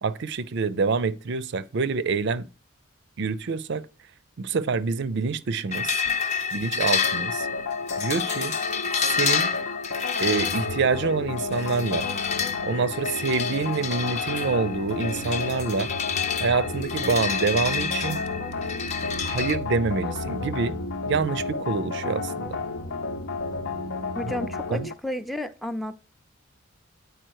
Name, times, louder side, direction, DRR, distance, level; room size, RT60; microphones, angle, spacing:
voice 1, 0.0-2.5 3.2-3.9 4.4-6.0 6.5-7.5 8.0-8.5 8.9-9.5 10.2-12.1 12.6-15.9 16.4-18.2 19.2-20.8 21.1-22.6 24.2-24.3 24.7-24.9, right 4 dB, 60° right, 0.5 m, -26 dB
sound 1, 5.7-19.5, left 6 dB, 35° left, 0.8 m, -29 dB
sound 2, 7.0-24.9, left 4 dB, 65° left, 0.8 m, -33 dB
sound 3, 10.2-24.8, equal, 80° left, 1.1 m, -37 dB
voice 2, 24.1-26.0, left 1 dB, ahead, 0.5 m, -32 dB
8.9 x 4.8 x 4.7 m
head